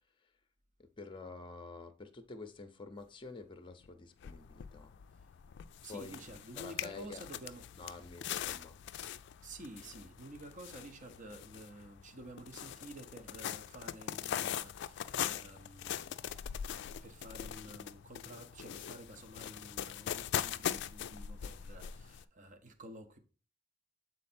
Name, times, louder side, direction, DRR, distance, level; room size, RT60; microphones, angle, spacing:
voice 1, 1.0-4.9 5.9-6.2 6.6-7.2 7.8-8.8, left 3 dB, 25° left, 0.6 m, -48 dB
sound 1, 3.8-3.9 4.2-22.2, left 9 dB, 65° left, 0.3 m, -42 dB
voice 2, 5.8-7.7 9.4-16.4 16.7-23.2, right 1 dB, 40° right, 0.8 m, -51 dB
7.6 x 4.0 x 4.3 m
head